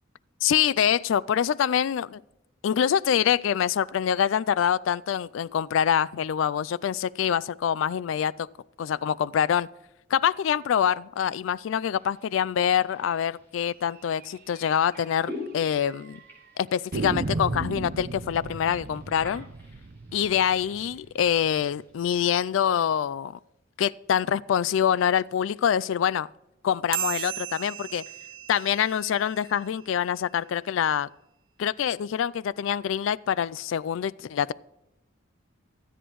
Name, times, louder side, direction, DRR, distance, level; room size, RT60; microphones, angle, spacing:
voice 1, 0.4-2.2 2.6-8.5 8.8-9.7 10.1-16.2 16.6-19.5 20.1-23.4 23.8-26.3 26.6-28.0 28.5-31.1 31.6-34.5, left 8 dB, 70° left, 0.3 m, -25 dB
sound 1, 12.0-21.9, left 2 dB, 10° left, 4.3 m, -47 dB
sound 2, 14.1-14.3 14.6-14.7 15.0-15.1 15.7-16.2 16.9-21.7, right 2 dB, 50° right, 0.6 m, -35 dB
sound 3, 26.9-29.8, right 12 dB, 85° right, 0.8 m, -35 dB
23.5 x 8.1 x 3.1 m
head